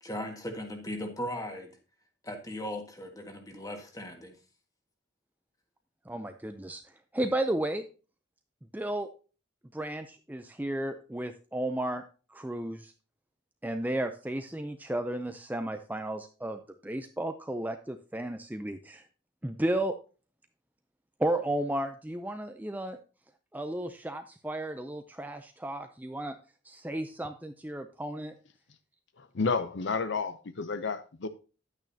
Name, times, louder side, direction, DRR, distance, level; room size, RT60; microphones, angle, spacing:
voice 1, 0.0-1.8 2.2-4.4, left 1 dB, 15° left, 1.7 m, -38 dB
voice 2, 6.1-6.8 7.1-7.8 8.7-9.1 9.7-12.0 12.3-12.9 13.6-19.0 19.4-20.0 21.2-23.0 23.5-26.4 26.6-28.4, right 1 dB, 10° right, 0.5 m, -33 dB
voice 3, 29.2-31.3, left 4 dB, 60° left, 0.6 m, -31 dB
10.5 x 9.1 x 2.8 m
head